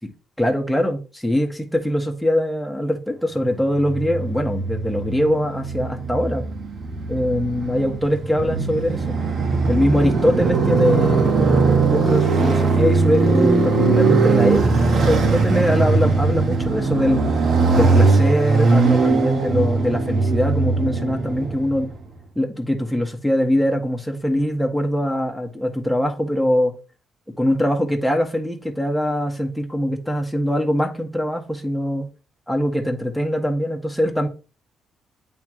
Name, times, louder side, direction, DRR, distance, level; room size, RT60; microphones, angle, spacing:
voice 1, 0.4-6.4 7.1-9.2 9.7-17.2 17.7-21.9 22.3-26.7 27.4-32.1 32.5-34.3, equal, ahead, 1.3 m, -22 dB
Motorcycle, 3.7-21.9, right 4 dB, 55° right, 1.2 m, -20 dB
8.5 x 3.7 x 3.1 m
cardioid pair, 90°, 0 cm